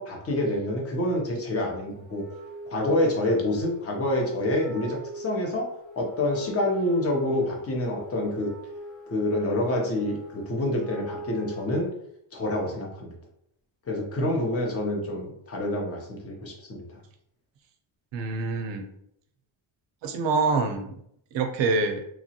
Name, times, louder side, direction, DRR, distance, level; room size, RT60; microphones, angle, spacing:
voice 1, 0.0-2.2 2.7-5.7 6.0-8.5 9.1-11.9 12.3-13.2 13.9-16.9, left 1 dB, 30° left, 0 dB, 0.7 m, -27 dB
Wind instrument woodwind instrument, 2.1-11.9, left 1 dB, ahead, 0.8 m, -44 dB
voice 2, 18.1-18.9 20.0-20.9 21.3-22.0, right 4 dB, 65° right, 6 dB, 0.5 m, -26 dB
3.0 x 2.2 x 2.7 m, 0.73 s
cardioid pair, 130°, 49 cm